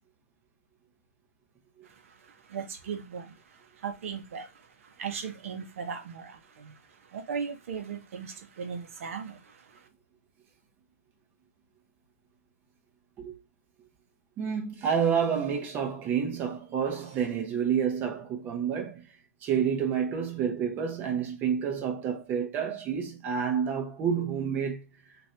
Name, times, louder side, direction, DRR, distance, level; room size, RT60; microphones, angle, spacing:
voice 1, 1.8-9.9, right 6 dB, 55° right, 0.8 m, -38 dB
voice 2, 14.4-19.1 19.4-24.8, right 7 dB, 20° right, 0.8 m, -29 dB
2.7 x 2.6 x 3.2 m
hypercardioid pair, 140°, 9 cm